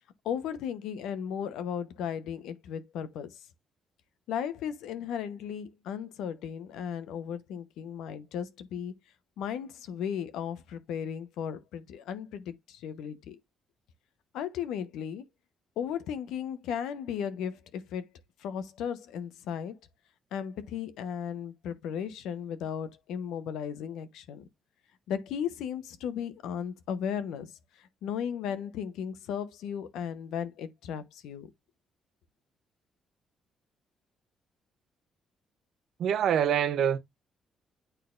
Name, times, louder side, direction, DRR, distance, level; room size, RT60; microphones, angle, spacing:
voice 1, 0.2-3.4 4.3-8.9 9.4-13.4 14.3-15.2 15.8-18.1 18.4-19.8 20.3-24.4 25.1-31.5, left 8 dB, 90° left, 0.9 m, -35 dB
voice 2, 36.0-37.0, right 9 dB, 70° right, 0.8 m, -25 dB
9.1 x 4.1 x 2.5 m
cardioid pair, 90°, 0 cm